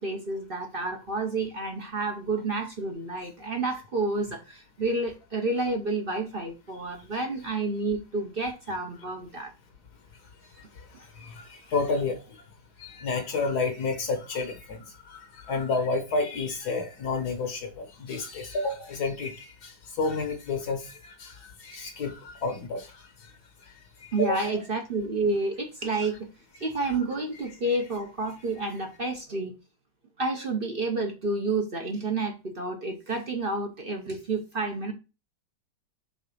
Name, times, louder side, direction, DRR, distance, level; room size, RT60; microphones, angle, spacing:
voice 1, 0.0-9.5 24.1-26.2 26.6-29.5 30.2-34.9, right 2 dB, 40° right, 0.9 m, -30 dB
voice 2, 11.2-12.2 12.8-20.9 21.2-21.3 21.6-22.9 24.0-24.6, left 3 dB, 65° left, 1.4 m, -30 dB
5.0 x 3.9 x 5.3 m
omnidirectional pair, 1.9 m